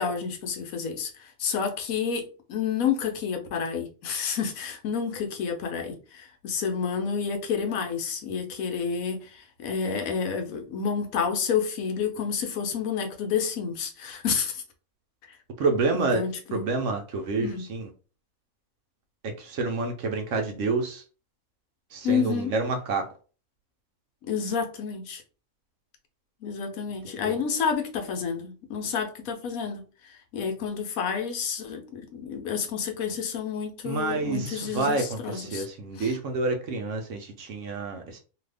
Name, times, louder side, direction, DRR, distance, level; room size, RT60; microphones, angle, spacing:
voice 1, 0.0-14.6 15.9-16.6 17.4-17.7 22.0-22.5 24.2-25.2 26.4-35.6 36.0-36.1, left 6 dB, 75° left, 1.1 m, -30 dB
voice 2, 15.6-16.2 16.5-17.9 19.4-21.0 21.9-23.1 27.0-27.4 33.8-38.2, right 3 dB, 65° right, 0.9 m, -28 dB
2.7 x 2.5 x 3.3 m
omnidirectional pair, 1.5 m